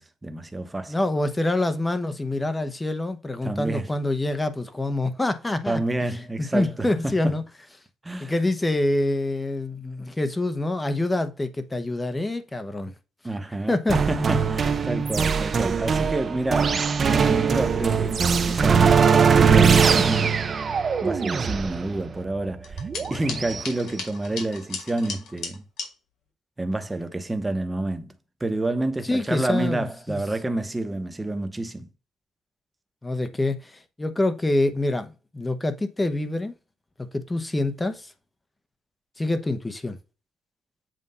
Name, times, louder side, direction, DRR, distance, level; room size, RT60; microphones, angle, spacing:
voice 1, 0.0-0.9 3.4-3.9 5.7-7.4 8.0-8.3 13.2-18.9 19.3-20.5 21.0-25.6 26.6-28.1 28.4-31.9, right 2 dB, 15° right, 1.1 m, -29 dB
voice 2, 0.9-5.8 6.4-7.4 8.2-12.9 13.7-14.0 29.0-30.2 33.0-36.6 37.0-38.1 39.2-40.0, left 2 dB, 15° left, 0.9 m, -26 dB
sound 1, 13.9-23.6, right 6 dB, 45° right, 0.6 m, -21 dB
sound 2, 22.6-25.9, left 5 dB, 75° left, 2.3 m, -36 dB
7.6 x 2.6 x 5.4 m
cardioid pair, 90°, 0 cm